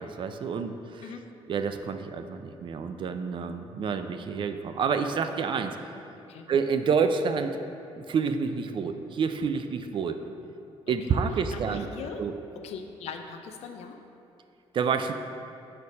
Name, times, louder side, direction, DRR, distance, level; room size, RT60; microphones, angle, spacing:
voice 1, 0.0-1.1 1.5-5.8 6.5-7.6 8.0-10.2 10.9-11.9 12.2-12.3 14.7-15.1, right 5 dB, 50° right, 8 dB, 0.4 m, -28 dB
voice 2, 11.5-12.2 12.6-14.0, left 6 dB, 75° left, 6 dB, 0.5 m, -40 dB
6.5 x 4.1 x 5.3 m, 2.7 s
cardioid pair, 105°, 11 cm